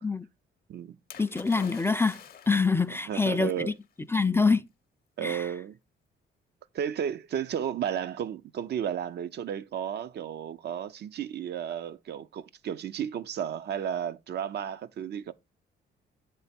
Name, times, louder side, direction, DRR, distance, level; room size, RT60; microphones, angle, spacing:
Splash splatter, 1.1-2.9 3.8-3.9, left 8 dB, 50° left, 0.7 m, -47 dB
voice 1, 1.2-3.7 4.1-4.6 5.2-5.5, left 4 dB, 10° left, 0.3 m, -25 dB
voice 2, 3.1-3.7 5.2-5.8 6.7-15.3, right 9 dB, 55° right, 0.5 m, -33 dB
8.0 x 3.4 x 4.1 m
cardioid pair, 90°, 20 cm